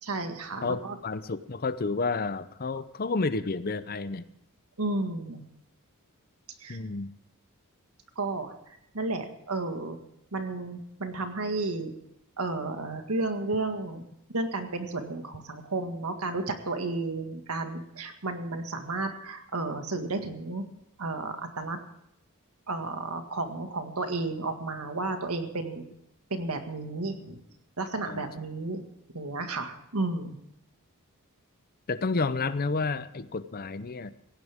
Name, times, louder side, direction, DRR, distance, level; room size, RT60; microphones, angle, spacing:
voice 1, 0.0-1.0 4.8-5.4 6.6-6.8 8.2-8.5 8.9-10.0 10.3-11.9 12.4-14.0 14.3-20.7 21.0-21.8 22.7-25.8 26.3-27.4 27.8-28.8 29.1-30.4, right 2 dB, 80° right, 6 dB, 1.9 m, -32 dB
voice 2, 0.6-4.3 6.7-7.1 28.0-28.3 31.9-34.1, left 3 dB, 45° left, 14 dB, 0.7 m, -30 dB
17.5 x 16.0 x 3.6 m, 0.77 s
head